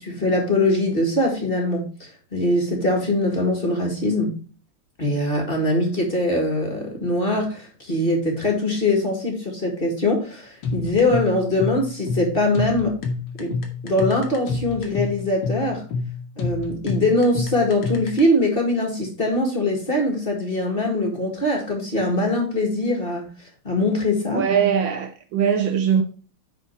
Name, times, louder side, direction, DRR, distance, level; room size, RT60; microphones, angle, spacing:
voice 1, 0.0-4.3 5.0-13.0 13.4-13.6 13.8-15.8 16.4-23.3 23.6-24.5, left 1 dB, 25° left, 1.9 m, -22 dB
sound 1, 10.6-18.2, left 4 dB, 80° left, 2.4 m, -28 dB
voice 2, 24.3-26.0, right 7 dB, 70° right, 1.4 m, -21 dB
10.0 x 4.3 x 4.6 m
omnidirectional pair, 2.4 m